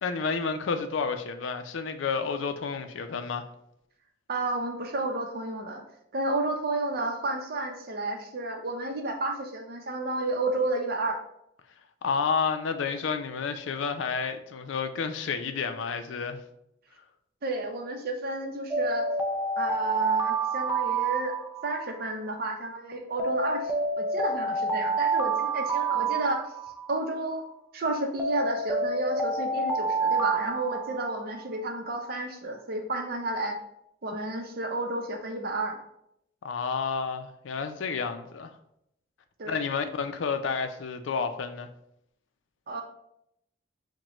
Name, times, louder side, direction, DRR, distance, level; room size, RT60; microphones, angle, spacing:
voice 1, 0.0-3.5 12.0-16.4 36.4-38.5 39.5-41.7, left 5 dB, 85° left, 0.4 m, -30 dB
voice 2, 4.3-5.8 6.1-11.2 17.4-19.1 19.6-21.3 21.6-26.4 26.9-27.4 27.7-33.6 34.0-35.8 39.4-39.6 42.7-42.8, right 2 dB, 55° right, 0.6 m, -31 dB
Alarm, 18.7-22.0 23.2-27.0 28.2-31.5, right 3 dB, 5° right, 0.3 m, -28 dB
6.1 x 2.2 x 2.9 m
head